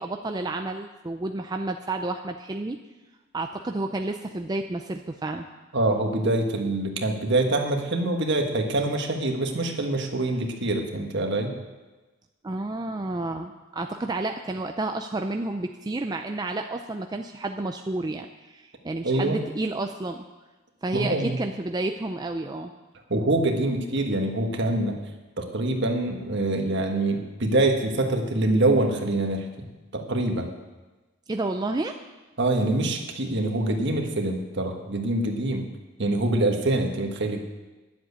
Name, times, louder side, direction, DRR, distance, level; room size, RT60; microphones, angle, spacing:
voice 1, 0.0-2.8 3.3-5.5 12.4-20.2 20.8-22.7 31.3-32.0, right 2 dB, 20° right, 5 dB, 0.4 m, -30 dB
voice 2, 5.7-11.6 19.0-19.4 20.9-21.4 23.1-25.0 25.4-29.7 29.9-30.5 32.4-35.6 36.0-37.4, right 2 dB, 55° right, 3 dB, 1.5 m, -25 dB
11.0 x 7.5 x 8.2 m, 1.2 s
head